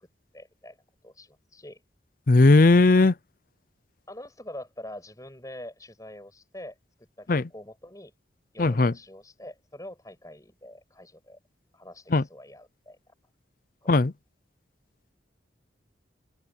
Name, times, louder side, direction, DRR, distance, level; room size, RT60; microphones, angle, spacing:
voice 1, 0.3-0.8 1.0-1.8 4.1-6.8 7.2-8.1 8.5-11.4 11.7-13.0 13.8-13.9, left 1 dB, 20° left, 7.9 m, -44 dB
voice 2, 2.3-3.1 7.3-7.5 8.6-8.9 12.1-12.2 13.9-14.1, left 3 dB, 45° left, 0.6 m, -18 dB
open air
head